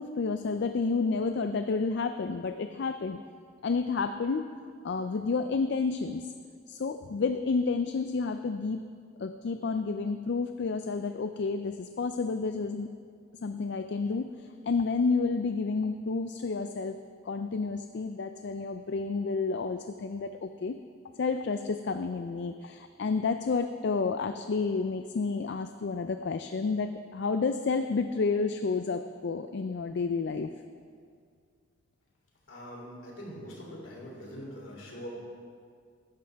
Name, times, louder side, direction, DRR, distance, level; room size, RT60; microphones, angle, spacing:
voice 1, 0.0-3.2 3.6-4.5 4.8-6.3 6.7-8.8 9.2-12.9 13.4-17.0 17.3-20.8 21.2-30.5, left 4 dB, 60° left, 9 dB, 0.4 m, -30 dB
voice 2, 32.5-35.1, equal, 75° left, -3 dB, 3.3 m, -43 dB
15.0 x 11.5 x 3.5 m, 2.1 s
head